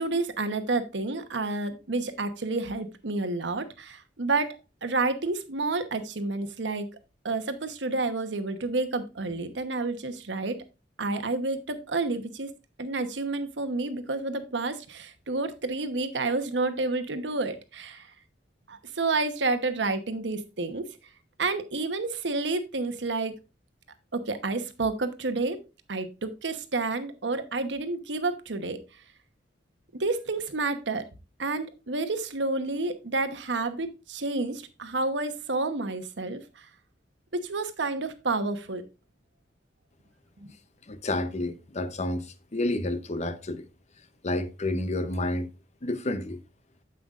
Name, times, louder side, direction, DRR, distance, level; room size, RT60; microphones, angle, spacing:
voice 1, 0.0-6.9 7.2-10.6 11.0-12.5 12.8-18.1 18.7-21.0 21.4-23.3 24.1-25.6 25.9-28.8 29.9-31.1 31.4-36.7 37.3-38.8 40.4-40.5, right 3 dB, 80° right, 1.0 m, -30 dB
voice 2, 40.9-43.7 44.2-45.5 45.8-46.4, left 2 dB, 40° left, 0.8 m, -30 dB
9.2 x 7.8 x 2.4 m
head